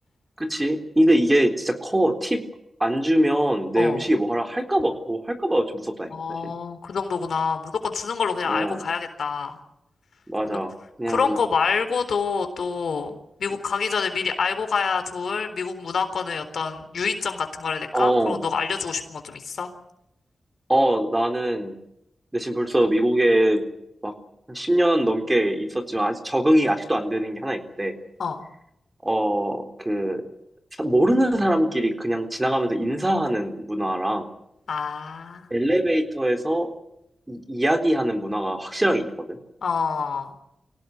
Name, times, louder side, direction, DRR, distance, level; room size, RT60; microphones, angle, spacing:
voice 1, 0.4-2.5 2.8-6.5 8.5-8.8 10.3-11.4 17.9-18.4 20.7-21.8 22.3-23.7 24.0-24.2 24.5-27.9 29.0-30.2 30.8-34.3 35.5-36.7 37.3-39.4, right 1 dB, 15° right, 5 dB, 3.8 m, -23 dB
voice 2, 6.1-9.6 10.5-10.6 11.1-19.7 28.2-28.4 34.7-35.5 39.6-40.3, left 5 dB, 80° left, 8 dB, 3.9 m, -27 dB
25.0 x 17.5 x 9.6 m, 0.83 s
cardioid pair, 75°, 0 cm